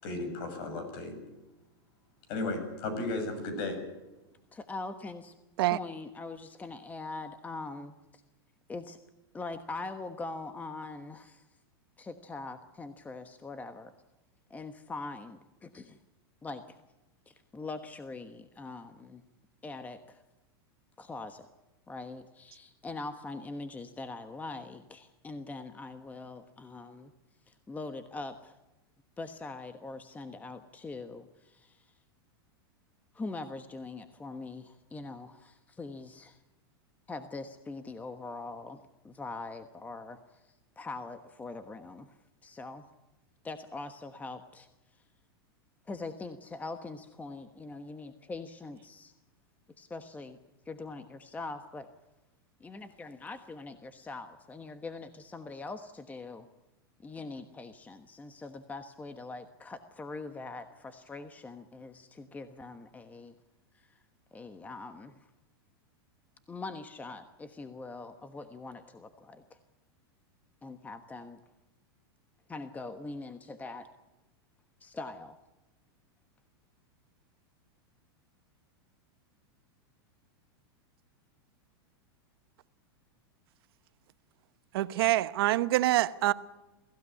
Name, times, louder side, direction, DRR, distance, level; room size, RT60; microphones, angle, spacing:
voice 1, 0.0-1.2 2.3-3.8, left 2 dB, 55° left, 7.6 m, -34 dB
voice 2, 4.5-8.2 8.7-9.0 9.3-11.5 12.0-13.9 14.5-16.0 16.4-16.8 17.3-19.2 19.6-20.2 21.0-21.5 21.9-27.1 27.5-28.6 29.2-31.9 33.1-36.4 37.1-38.8 39.0-42.8 43.4-44.7 45.9-49.1 49.8-50.4 50.6-51.9 52.6-56.5 57.0-63.3 63.7-64.0 64.3-65.1 66.5-69.6 70.6-71.4 72.5-73.9 74.8-75.3, left 3 dB, 10° left, 1.2 m, -42 dB
voice 3, 84.7-86.3, right 16 dB, 70° right, 1.0 m, -25 dB
22.5 x 16.0 x 9.9 m
supercardioid pair, 130°, 13 cm